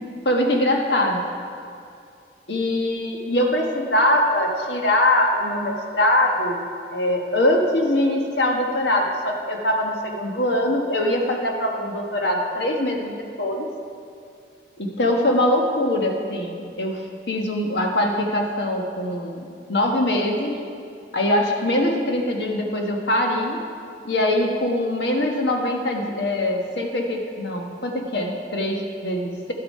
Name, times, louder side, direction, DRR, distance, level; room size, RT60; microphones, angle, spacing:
voice 1, 0.2-1.2 2.5-6.6 6.9-13.7 14.8-20.6 21.1-23.6 24.0-29.5, left 1 dB, 70° left, 2 dB, 1.3 m, -22 dB
11.5 x 7.8 x 5.5 m, 2.4 s
head